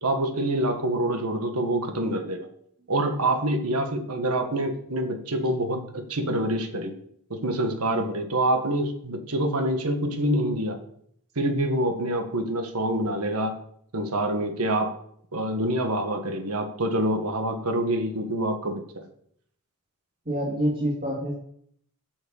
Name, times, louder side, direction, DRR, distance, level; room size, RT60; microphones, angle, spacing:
voice 1, 0.0-2.5 2.9-6.9 7.3-10.8 11.3-13.6 13.9-14.9 15.3-19.0, right 1 dB, 80° right, 5 dB, 1.6 m, -26 dB
voice 2, 20.3-21.3, equal, 40° right, -5 dB, 2.6 m, -26 dB
8.5 x 6.3 x 7.1 m, 0.68 s
head